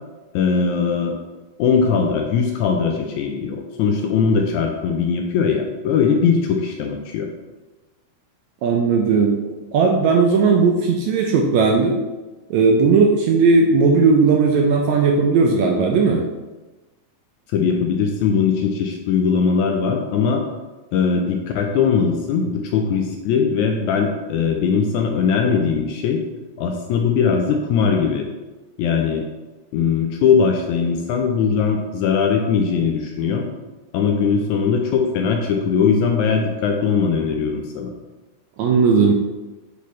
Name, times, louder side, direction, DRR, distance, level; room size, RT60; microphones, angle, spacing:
voice 1, 0.3-1.1 1.6-7.3 17.5-20.4 20.9-26.2 26.6-28.3 28.8-29.2 29.7-33.5 33.9-37.9, left 6 dB, 80° left, 2 dB, 1.8 m, -20 dB
voice 2, 8.6-12.0 12.5-16.2 38.6-39.1, right 4 dB, 80° right, 1 dB, 1.6 m, -16 dB
8.2 x 4.2 x 3.1 m, 1.2 s
omnidirectional pair, 3.8 m